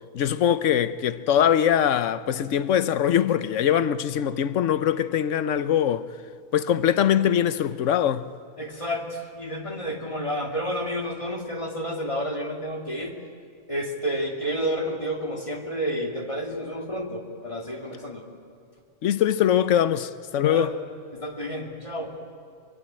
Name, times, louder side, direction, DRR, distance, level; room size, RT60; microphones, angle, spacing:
voice 1, 0.1-6.1 6.5-8.3 19.0-20.7, left 9 dB, 65° left, 1.1 m, -22 dB
voice 2, 8.6-13.2 13.7-18.3 20.4-20.7 21.1-22.2, equal, 20° left, 2.6 m, -30 dB
24.0 x 23.0 x 8.9 m
omnidirectional pair, 1.4 m